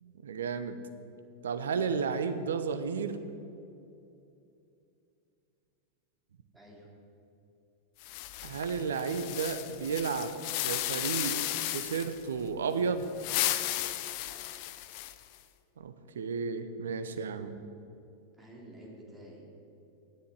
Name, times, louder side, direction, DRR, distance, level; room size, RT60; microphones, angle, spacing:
voice 1, 0.0-0.8 1.4-3.2 8.4-10.3 10.6-13.1 15.8-17.5, right 5 dB, 65° right, 10 dB, 0.7 m, -33 dB
voice 2, 6.5-6.9 14.3-14.4 18.4-19.4, right 1 dB, 5° right, -3 dB, 2.4 m, -50 dB
sound 1, 8.0-12.2 13.0-15.4, left 15 dB, 45° left, 0.4 m, -34 dB
9.9 x 6.7 x 7.8 m, 2.7 s
figure-of-eight pair, 90°, 0 cm